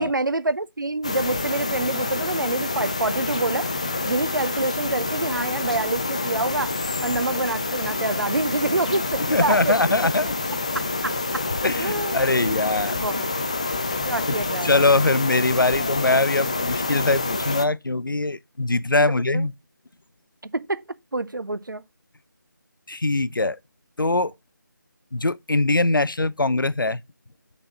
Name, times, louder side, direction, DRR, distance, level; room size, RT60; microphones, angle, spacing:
voice 1, 0.0-3.7 4.1-6.7 7.0-10.3 10.7-11.4 11.8-12.6 12.9-13.3 14.0-14.8 19.3-19.5 20.5-20.8 21.1-21.8, right 2 dB, 75° right, 0.7 m, -27 dB
sound 1, 1.0-17.7, left 3 dB, 20° left, 0.4 m, -27 dB
voice 2, 9.3-10.3 11.6-13.0 14.6-19.5 22.9-23.6 24.0-24.3 25.1-27.0, left 2 dB, 90° left, 0.5 m, -22 dB
6.8 x 4.2 x 5.6 m
figure-of-eight pair, 160°, 11 cm